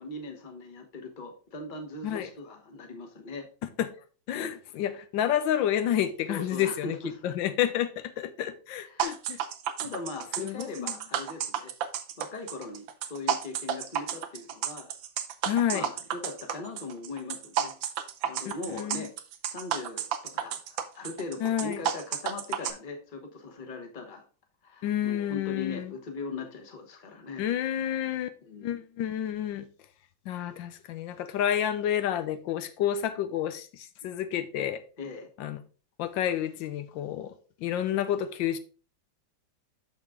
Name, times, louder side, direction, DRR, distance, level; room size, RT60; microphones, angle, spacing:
voice 1, 0.0-3.5 4.3-4.6 6.3-7.2 8.8-9.1 9.8-11.7 12.2-14.9 15.7-17.8 18.2-19.1 19.5-24.2 24.6-27.5 28.4-28.8 35.0-35.3, left 3 dB, 30° left, 1.1 m, -40 dB
voice 2, 4.3-7.0 7.2-9.4 10.4-10.9 15.5-15.8 18.5-19.1 21.4-21.8 24.8-25.9 27.4-28.3 28.6-29.7 30.3-34.8 35.4-35.6 36.0-37.3 37.6-38.6, left 10 dB, 85° left, 1.4 m, -29 dB
sound 1, 9.0-22.7, right 9 dB, 90° right, 1.5 m, -32 dB
6.4 x 6.2 x 3.6 m
omnidirectional pair, 2.0 m